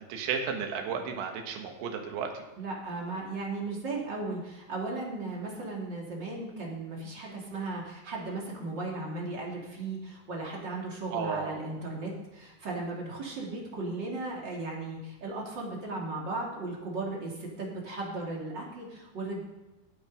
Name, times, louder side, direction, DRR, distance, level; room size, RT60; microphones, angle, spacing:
voice 1, 0.0-2.4 5.5-5.6 11.1-11.7, right 6 dB, 75° right, 3 dB, 3.8 m, -34 dB
voice 2, 2.6-19.4, right 2 dB, 35° right, -3 dB, 2.2 m, -36 dB
14.5 x 8.9 x 5.3 m, 1.1 s
omnidirectional pair, 5.4 m